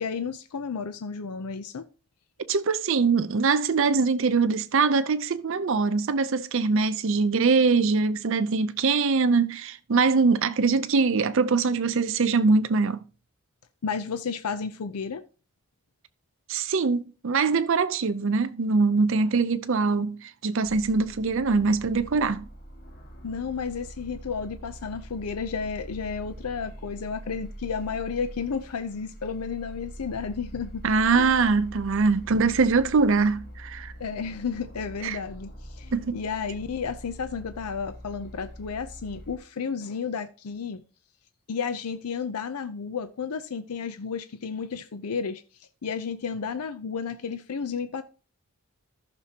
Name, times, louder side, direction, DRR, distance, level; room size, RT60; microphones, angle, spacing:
voice 1, 0.0-1.9 13.8-15.2 23.2-30.8 31.1-31.4 34.0-40.8 41.5-48.0, left 6 dB, 85° left, 0.6 m, -32 dB
voice 2, 2.5-13.0 16.5-22.4 30.8-33.9 35.0-35.2 35.9-36.2, right 4 dB, 60° right, 0.5 m, -23 dB
sound 1, 20.6-39.4, equal, 40° left, 1.5 m, -43 dB
14.5 x 6.1 x 2.8 m
head